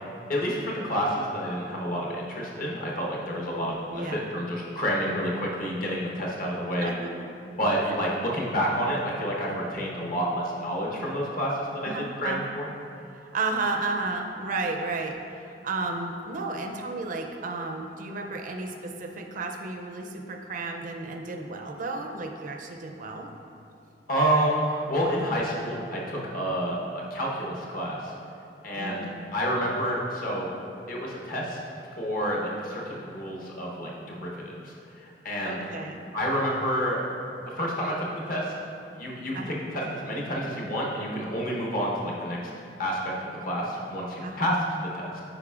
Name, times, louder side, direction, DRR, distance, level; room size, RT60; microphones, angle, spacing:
voice 1, 0.3-6.9 7.4-12.7 24.1-26.8 27.1-28.1 28.6-29.1 29.3-30.5 30.9-31.6 31.9-35.6 36.1-37.0 37.4-38.5 38.9-42.5 42.8-43.1 43.4-45.2, equal, 55° left, -3 dB, 1.0 m, -29 dB
voice 2, 3.9-4.2 6.8-7.3 7.8-7.9 11.8-12.4 13.1-23.3 28.8-29.2 35.4-36.0 39.3-39.6 44.2-44.5, right 3 dB, 50° right, 3 dB, 0.4 m, -33 dB
8.5 x 5.0 x 2.4 m, 2.6 s
head